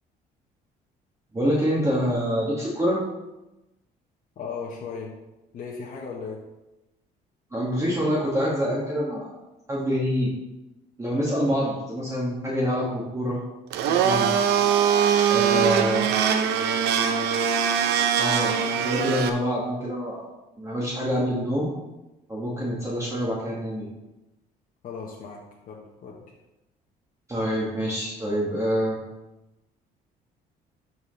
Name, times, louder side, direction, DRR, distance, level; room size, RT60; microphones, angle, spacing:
voice 1, 1.3-3.0 7.5-9.3 9.7-10.3 11.0-13.4 13.9-14.3 15.3-16.0 18.2-20.3 20.6-21.7 22.3-23.9 27.3-29.0, equal, 15° right, -5 dB, 2.0 m, -26 dB
voice 2, 4.3-5.2 5.5-6.4 15.4-17.4 24.8-26.3, left 5 dB, 55° left, -3 dB, 1.4 m, -38 dB
Domestic sounds home sounds, 13.7-19.3, right 8 dB, 80° right, 0.7 m, -22 dB
12.5 x 4.7 x 3.3 m, 0.98 s
cardioid pair, 110°, 17 cm